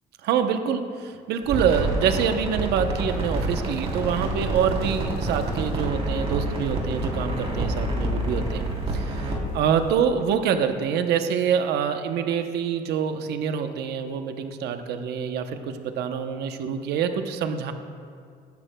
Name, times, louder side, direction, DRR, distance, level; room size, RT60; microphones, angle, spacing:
voice 1, 0.2-8.7 8.9-17.7, right 7 dB, 75° right, 7 dB, 0.8 m, -26 dB
sound 1, 1.4-10.0, right 1 dB, 35° right, 3.3 m, -28 dB
18.0 x 13.0 x 2.2 m, 2.2 s
cardioid pair, 110°, 17 cm